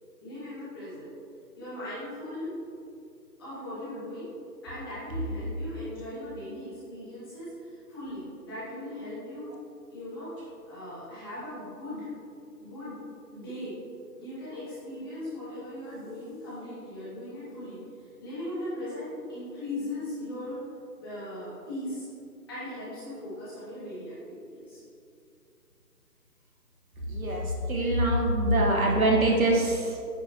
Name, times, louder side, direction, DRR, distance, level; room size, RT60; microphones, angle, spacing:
voice 1, 0.2-1.1 1.6-2.5 3.4-4.3 4.6-9.5 9.9-10.4 10.7-12.1 12.6-13.0 13.3-13.7 14.2-20.6 21.0-22.1 22.5-24.8, left 1 dB, 15° left, -11 dB, 1.8 m, -38 dB
voice 2, 27.1-30.0, right 1 dB, 55° right, -1 dB, 1.4 m, -24 dB
9.4 x 5.6 x 2.9 m, 2.5 s
figure-of-eight pair, 165°, 49 cm